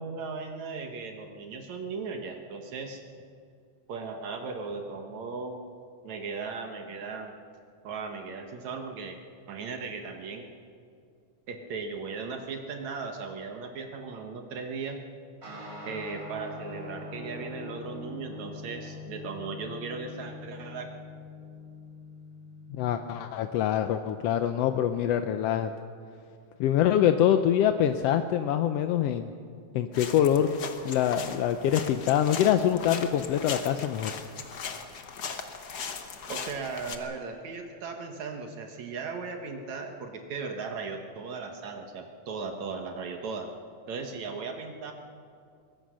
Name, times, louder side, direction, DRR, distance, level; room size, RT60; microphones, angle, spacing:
voice 1, 0.0-3.0 3.9-5.6 6.0-7.3 7.8-9.2 9.5-10.5 11.5-15.0 15.8-20.9 36.3-43.5 43.9-44.9, right 4 dB, 70° right, 4 dB, 2.6 m, -37 dB
sound 1, 15.4-23.2, left 2 dB, 35° right, 6.5 m, -43 dB
voice 2, 22.7-25.7 26.6-29.3 29.7-34.1, left 10 dB, 75° left, 8 dB, 1.5 m, -25 dB
sound 2, 29.9-37.0, left 6 dB, 50° left, 1.2 m, -39 dB
23.5 x 19.5 x 6.4 m, 2.4 s
omnidirectional pair, 3.4 m